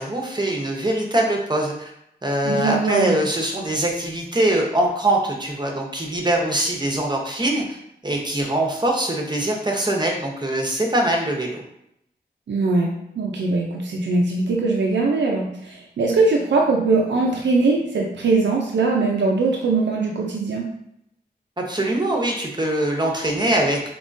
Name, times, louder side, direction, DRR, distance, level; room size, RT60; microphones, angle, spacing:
voice 1, 0.0-1.9 2.2-7.8 8.0-11.6 21.6-23.9, right 1 dB, 25° right, 0 dB, 0.8 m, -22 dB
voice 2, 2.4-3.2 12.5-20.7, right 3 dB, 85° right, -1 dB, 0.5 m, -21 dB
3.5 x 2.9 x 2.6 m, 0.78 s
cardioid pair, 55°, 18 cm